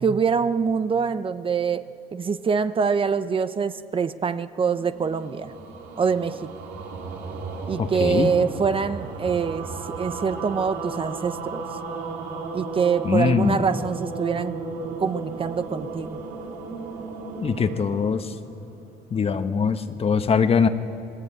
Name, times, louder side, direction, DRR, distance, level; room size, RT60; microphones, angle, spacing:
voice 1, 0.0-1.9 2.1-5.5 6.0-6.5 7.7-11.6 12.5-14.6 15.0-16.2, right 6 dB, 30° right, 12 dB, 0.8 m, -25 dB
sound 1, 4.7-19.1, right 4 dB, 85° right, 3.8 m, -35 dB
voice 2, 7.8-8.3 13.0-13.6 17.4-18.3 19.1-20.7, left 6 dB, 35° left, 9 dB, 1.2 m, -22 dB
28.0 x 19.0 x 8.8 m, 2.7 s
cardioid pair, 110°, 17 cm